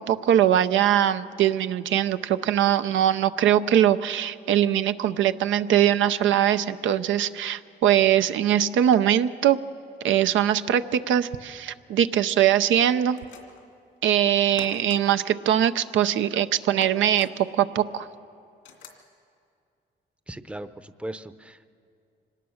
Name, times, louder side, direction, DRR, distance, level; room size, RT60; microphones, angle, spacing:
voice 1, 0.0-9.6 10.0-13.2 14.0-18.1, right 10 dB, 75° right, 11 dB, 0.6 m, -22 dB
sound 1, 13.1-13.7 14.6-15.0 16.8-17.3 18.6-19.0, left 5 dB, 80° left, 2.4 m, -44 dB
voice 2, 20.3-21.7, right 1 dB, 5° right, 12 dB, 0.7 m, -38 dB
24.5 x 18.5 x 6.4 m, 2.4 s
cardioid pair, 90°, 20 cm